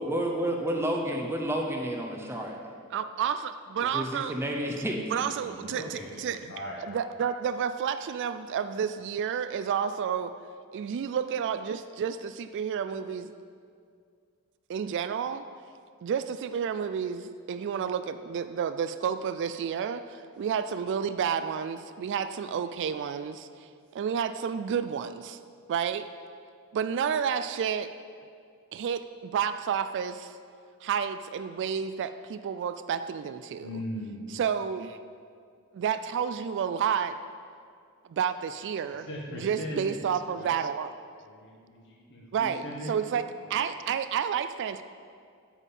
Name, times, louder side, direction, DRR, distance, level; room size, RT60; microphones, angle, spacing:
voice 1, 0.0-2.6 3.9-5.0, right 1 dB, 10° right, 1 dB, 0.7 m, -30 dB
voice 2, 2.9-4.4 5.1-6.4 6.9-10.3 10.7-13.3 14.7-15.4 16.0-25.4 25.7-26.1 26.7-27.9 28.7-30.4 30.8-33.7 34.3-35.0 35.7-37.2 38.1-40.9 42.3-44.8, right 7 dB, 55° right, 11 dB, 0.3 m, -30 dB
voice 3, 5.4-6.2 6.5-6.9 33.6-34.3 39.1-40.1 40.3-40.6 41.2-43.1, left 1 dB, 55° left, -3 dB, 1.5 m, -39 dB
8.2 x 7.2 x 5.4 m, 2.3 s
head